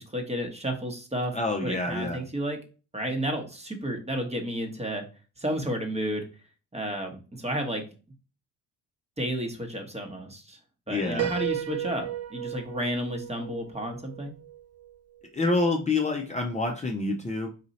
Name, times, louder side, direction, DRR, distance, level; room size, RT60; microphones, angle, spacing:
voice 1, 0.0-1.3 1.6-2.6 2.9-5.0 5.4-6.3 6.7-7.8 9.2-10.6 10.9-14.3, equal, 15° right, 4 dB, 1.1 m, -32 dB
voice 2, 1.3-2.2 10.9-11.3 15.3-17.5, left 2 dB, 20° left, 1 dB, 0.6 m, -27 dB
Piano, 11.2-14.9, right 12 dB, 40° right, 0.5 m, -34 dB
4.2 x 2.6 x 4.1 m, 0.35 s
supercardioid pair, 65°, 39 cm